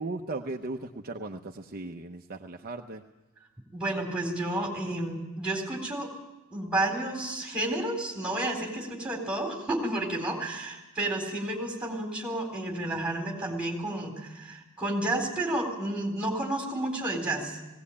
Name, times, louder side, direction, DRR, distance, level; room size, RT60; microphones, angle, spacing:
voice 1, 0.0-3.0, right 2 dB, 40° right, 3 dB, 0.8 m, -37 dB
voice 2, 3.7-6.1 6.5-17.6, right 1 dB, 5° right, 1 dB, 4.1 m, -31 dB
19.0 x 17.5 x 8.6 m, 1.1 s
head